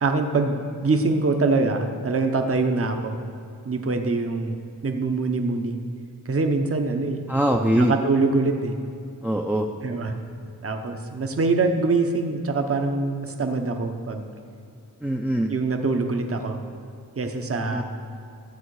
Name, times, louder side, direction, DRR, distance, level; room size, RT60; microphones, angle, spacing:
voice 1, 0.0-3.2 3.6-5.8 6.2-7.2 7.8-8.7 9.8-10.1 10.6-14.2 15.5-16.6 17.2-17.8, right 3 dB, 40° right, 5 dB, 1.0 m, -24 dB
voice 2, 7.3-7.9 9.2-9.7 15.0-15.5 17.7-17.8, equal, 5° right, 2 dB, 0.6 m, -22 dB
13.0 x 7.7 x 4.8 m, 2.6 s
wide cardioid pair, 90°, 34 cm